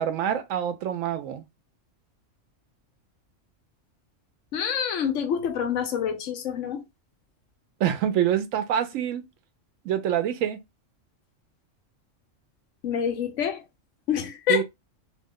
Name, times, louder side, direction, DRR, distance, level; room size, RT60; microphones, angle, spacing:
voice 1, 0.0-1.4 7.8-9.2 9.8-10.6 14.5-14.6, right 10 dB, 85° right, 1.0 m, -26 dB
voice 2, 4.5-6.8 12.8-13.6 14.1-14.6, left 8 dB, 75° left, 1.0 m, -27 dB
2.8 x 2.1 x 3.5 m
omnidirectional pair, 1.3 m